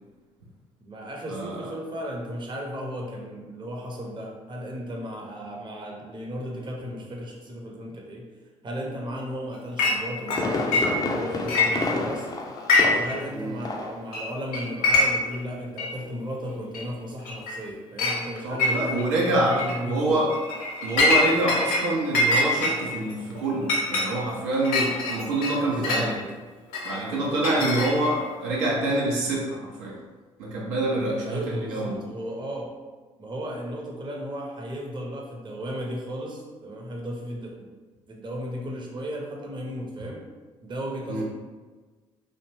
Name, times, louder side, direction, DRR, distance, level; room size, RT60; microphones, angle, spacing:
voice 1, 0.8-8.3 8.6-12.3 12.8-19.1 19.3-20.3 25.7-26.1 27.5-27.8 31.3-32.7 33.2-37.7 38.1-40.2 40.6-41.2, equal, 30° right, -1 dB, 0.7 m, -35 dB
Chink clink, 9.8-10.0 10.3-11.2 11.5-12.2 12.6-13.2 13.4-13.5 14.1-14.3 14.5-15.3 15.8-15.9 16.7-16.8 17.3-17.6 18.0-18.2 18.6-19.1 19.5-19.8 20.3-21.8 22.1-26.1 26.7-28.2, left 2 dB, 65° left, 0.6 m, -24 dB
Fireworks, 9.9-13.3 13.6-14.0 14.3-14.4, left 2 dB, 25° left, 0.4 m, -29 dB
voice 2, 18.4-20.3 20.8-26.2 26.8-30.0 30.4-32.0 41.1-41.2, right 2 dB, 75° right, -4 dB, 0.5 m, -26 dB
2.6 x 2.1 x 3.0 m, 1.4 s
hypercardioid pair, 50°, 16 cm